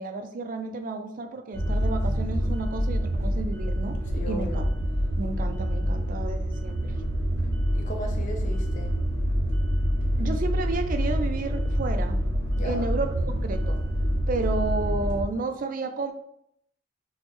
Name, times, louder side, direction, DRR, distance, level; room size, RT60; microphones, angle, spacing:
voice 1, 0.0-4.0 4.3-4.7 5.2-7.0 10.2-12.2 12.6-13.8 14.3-16.1, right 3 dB, 45° right, 7 dB, 0.4 m, -31 dB
sound 1, 1.5-15.2, equal, 60° right, 0.8 m, -26 dB
voice 2, 4.1-4.7 7.8-8.9 12.5-12.9, equal, 40° left, 2 dB, 0.6 m, -36 dB
4.5 x 2.1 x 3.0 m, 0.73 s
head